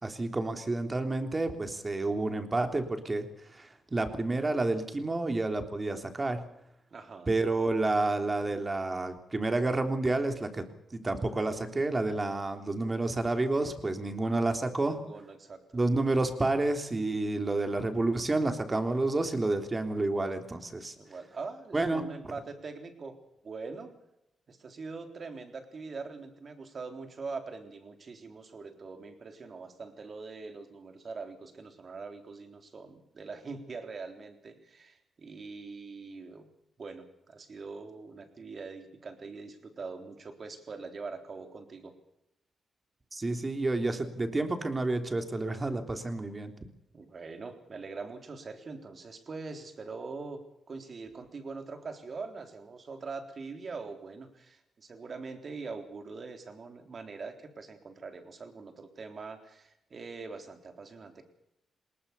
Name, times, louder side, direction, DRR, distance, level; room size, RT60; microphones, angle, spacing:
voice 1, 0.0-6.5 7.3-15.0 15.7-20.9 21.7-22.3 43.1-46.5, right 2 dB, 30° right, 6 dB, 3.4 m, -30 dB
voice 2, 6.9-7.3 14.8-15.6 21.0-23.2 23.4-23.9 24.5-36.5 36.8-41.9 46.9-50.4 50.7-61.2, right 4 dB, 50° right, 6 dB, 3.8 m, -43 dB
21.0 x 19.0 x 7.0 m, 0.85 s
cardioid pair, 60°, 0 cm